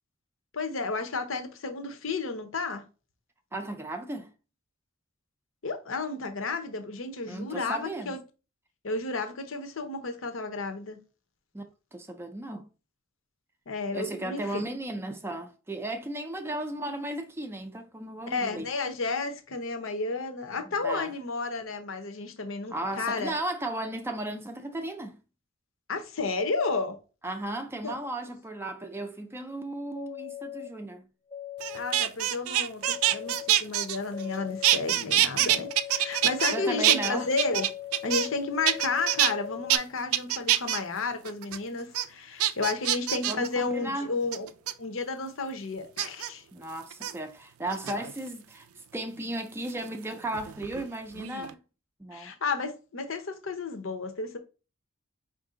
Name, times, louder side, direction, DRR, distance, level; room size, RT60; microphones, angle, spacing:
voice 1, 0.5-2.8 5.6-8.2 8.8-11.0 13.7-14.6 18.3-23.3 25.9-27.0 27.8-27.9 31.7-37.6 38.0-44.5 44.8-46.4 52.1-54.4, left 3 dB, 65° left, 0.8 m, -32 dB
voice 2, 3.5-4.3 7.3-8.2 11.5-11.6 11.9-12.6 13.9-18.7 20.6-21.1 22.7-25.2 27.2-31.1 36.5-37.3 43.3-44.1 46.5-48.7 48.9-51.6 52.0-52.3, right 1 dB, 10° right, 0.4 m, -35 dB
sound 1, 29.9-30.7 31.3-32.0 32.8-33.5 34.1-34.8 35.5-39.8, left 12 dB, 5° left, 0.8 m, -40 dB
sound 2, 31.6-34.4 34.6-36.6 36.8-38.4 38.7-39.3 39.7-39.8 40.1-40.8 41.2-41.6 41.9-42.0 42.4-43.5 44.3-44.7 46.0-46.3 46.9-47.1 47.7-48.3 49.7-50.9 51.1-51.5, right 13 dB, 90° right, 0.4 m, -25 dB
4.7 x 2.6 x 3.7 m
head